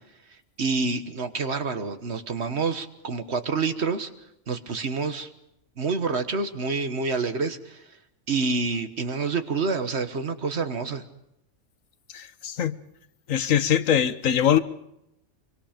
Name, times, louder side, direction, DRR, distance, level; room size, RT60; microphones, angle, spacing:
voice 1, 0.6-4.1 4.5-5.3 5.8-7.8 8.3-11.0, right 4 dB, 55° right, 1.6 m, -27 dB
voice 2, 12.1-12.8 13.3-14.6, left 9 dB, 85° left, 1.4 m, -22 dB
25.5 x 24.0 x 5.1 m
omnidirectional pair, 1.3 m